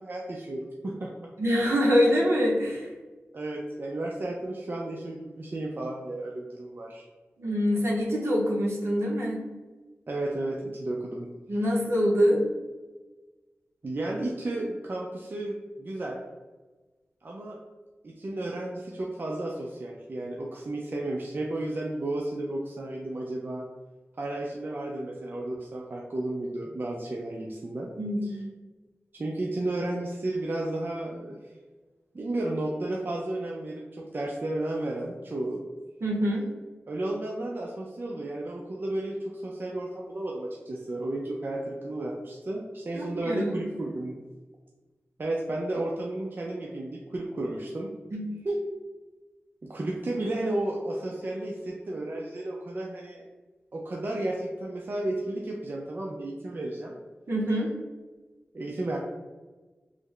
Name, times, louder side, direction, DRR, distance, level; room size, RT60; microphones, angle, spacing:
voice 1, 0.0-1.3 3.3-7.0 10.1-11.3 13.8-16.2 17.2-17.6 18.0-23.7 24.2-27.9 28.2-28.4 29.1-31.4 32.1-35.6 36.9-44.2 45.2-47.9 49.6-53.2 53.7-57.0 58.5-59.0, right 1 dB, 45° right, -1 dB, 0.4 m, -33 dB
voice 2, 1.4-2.9 7.4-9.4 11.5-12.4 28.0-28.5 36.0-36.5 42.9-43.6 48.1-48.6 57.3-57.7, equal, 70° right, -3 dB, 0.8 m, -25 dB
3.3 x 2.1 x 3.7 m, 1.3 s
wide cardioid pair, 75°, 5 cm